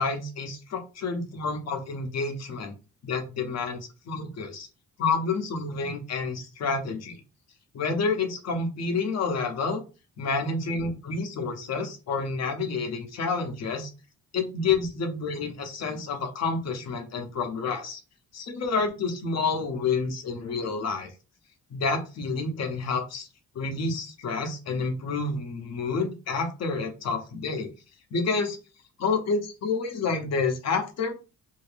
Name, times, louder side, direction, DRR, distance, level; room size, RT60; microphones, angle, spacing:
voice 1, 0.0-2.7 3.0-4.7 5.0-7.1 7.7-9.8 10.2-13.9 14.3-18.0 18.3-21.1 21.7-23.3 23.5-27.7 28.1-28.6 29.0-31.1, left 4 dB, 60° left, 5 dB, 0.8 m, -29 dB
2.8 x 2.7 x 3.3 m, 0.31 s
cardioid pair, 145°, 30 cm